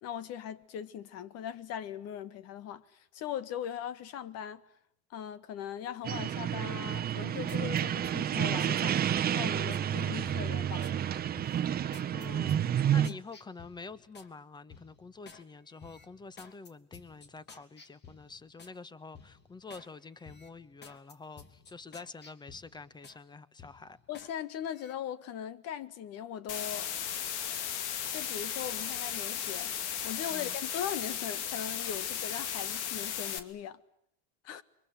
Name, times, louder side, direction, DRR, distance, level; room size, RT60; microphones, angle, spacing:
voice 1, 0.0-4.6 5.1-9.0 9.3-10.9 13.0-13.1 24.1-26.9 28.1-29.7 30.0-33.8 34.4-34.6, left 9 dB, 45° left, 1.8 m, -39 dB
sound 1, 6.0-13.1, right 10 dB, 25° right, 1.2 m, -30 dB
sound 2, 6.9-9.9 10.3-11.0 11.3-14.3 14.7-15.4 15.8-18.8 19.1-19.9 20.2-23.2 23.6-24.3 24.7-24.9, left 5 dB, 30° left, 2.9 m, -54 dB
voice 2, 12.1-24.0 30.3-30.6, left 4 dB, 10° left, 1.4 m, -47 dB
sound 3, 26.5-33.4, left 9 dB, 80° left, 2.5 m, -35 dB
29.5 x 24.5 x 7.7 m
supercardioid pair, 120°, 34 cm